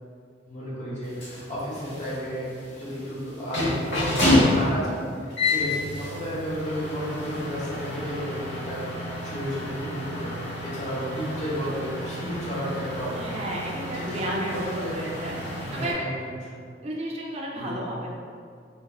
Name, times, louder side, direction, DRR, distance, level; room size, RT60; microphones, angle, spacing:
voice 1, 0.5-10.4 10.6-13.4 13.9-15.0 15.6-16.6 17.6-17.7, equal, 40° left, -8 dB, 0.9 m, -32 dB
sound 1, 1.0-15.9, left 1 dB, 75° left, 1.0 m, -29 dB
voice 2, 13.1-15.3 15.7-16.0 16.8-18.1, right 1 dB, 35° right, -3 dB, 0.3 m, -32 dB
3.3 x 2.3 x 2.3 m, 2.2 s
head